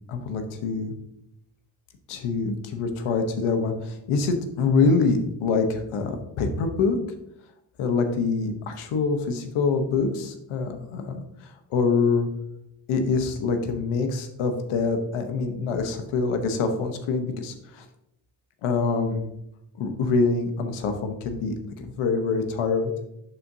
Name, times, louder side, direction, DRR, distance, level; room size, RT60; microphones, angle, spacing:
voice 1, 0.1-0.9 2.1-7.0 7.8-12.3 12.9-17.8 18.6-19.3 19.8-21.5 21.8-22.9, left 4 dB, 90° left, 6 dB, 1.0 m, -25 dB
11.0 x 4.3 x 2.7 m, 0.81 s
supercardioid pair, 50°, 48 cm